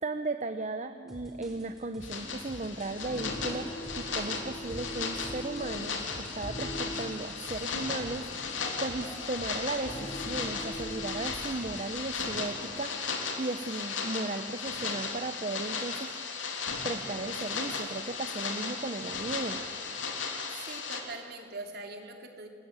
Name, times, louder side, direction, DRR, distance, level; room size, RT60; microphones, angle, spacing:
voice 1, 0.0-16.1 16.8-19.6, right 2 dB, 35° right, 8 dB, 0.8 m, -36 dB
sound 1, 1.1-12.0, equal, ahead, 4.8 m, -48 dB
sound 2, 2.0-21.0, left 5 dB, 90° left, 3.3 m, -36 dB
sound 3, 3.0-11.3, equal, 15° left, 4.6 m, -42 dB
voice 2, 20.5-22.5, right 3 dB, 55° right, 3 dB, 3.2 m, -42 dB
28.0 x 22.0 x 8.9 m, 2.2 s
head